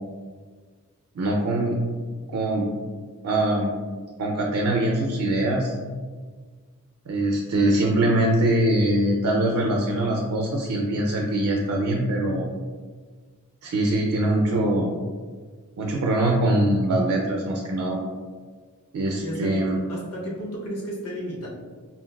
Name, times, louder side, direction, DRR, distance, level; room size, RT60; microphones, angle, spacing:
voice 1, 1.2-1.8 2.3-2.7 3.2-3.7 4.2-5.8 7.1-12.5 13.6-14.9 15.8-18.0 18.9-19.8, right 1 dB, 70° right, 0 dB, 0.4 m, -23 dB
voice 2, 19.2-21.5, equal, 75° left, -4 dB, 0.6 m, -33 dB
3.9 x 2.2 x 2.2 m, 1.5 s
head